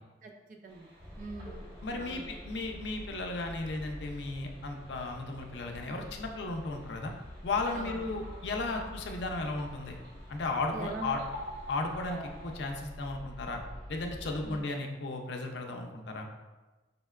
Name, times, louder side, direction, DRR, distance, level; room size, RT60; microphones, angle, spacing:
voice 1, 0.2-0.9 1.2-1.7 2.0-2.3 7.8-8.0 10.7-11.2 14.4-14.6, right 3 dB, 45° right, 3 dB, 0.3 m, -42 dB
sound 1, 0.7-12.8, equal, 60° right, 0.9 m, -51 dB
sound 2, 1.0-14.6, equal, 5° left, 1.0 m, -47 dB
voice 2, 1.8-7.1 7.4-10.0 10.3-11.2 11.7-13.6 13.9-16.3, left 3 dB, 70° left, 3 dB, 0.4 m, -35 dB
5.1 x 2.1 x 2.3 m, 1.2 s
head